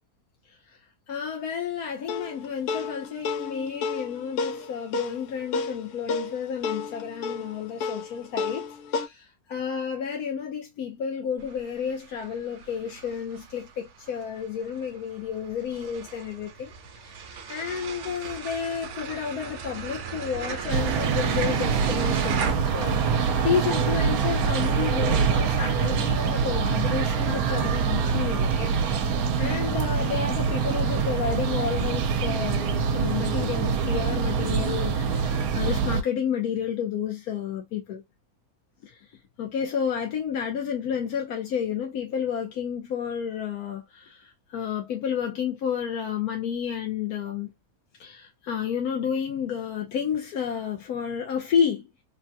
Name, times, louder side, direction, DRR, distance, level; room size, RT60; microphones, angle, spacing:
voice 1, 1.1-16.7 17.3-28.8 29.4-38.0 38.8-39.0 39.4-47.5 48.0-51.9, left 7 dB, 80° left, 1.2 m, -31 dB
sound 1, 2.1-9.1, left 4 dB, 65° left, 0.9 m, -31 dB
sound 2, 11.4-22.5, right 6 dB, 65° right, 0.9 m, -37 dB
sound 3, 20.7-36.0, right 6 dB, 80° right, 1.1 m, -25 dB
3.6 x 2.2 x 2.7 m
omnidirectional pair, 1.6 m